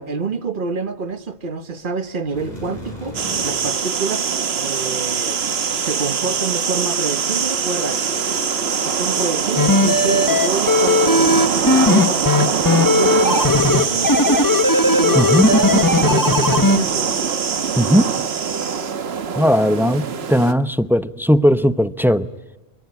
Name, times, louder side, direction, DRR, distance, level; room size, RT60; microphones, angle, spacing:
voice 1, 0.0-3.2 3.4-5.4 5.8-8.3 8.8-14.6 15.0-17.2, right 4 dB, 50° right, 1.4 m, -27 dB
sound 1, 2.2-3.8, left 1 dB, 40° left, 7.3 m, -34 dB
sound 2, 3.1-20.5, right 6 dB, 70° right, 1.4 m, -22 dB
sound 3, 9.6-16.8, left 2 dB, 20° left, 1.3 m, -16 dB
voice 2, 15.2-15.5 17.8-18.1 19.4-22.3, equal, ahead, 0.6 m, -17 dB
26.0 x 23.0 x 9.6 m
omnidirectional pair, 1.1 m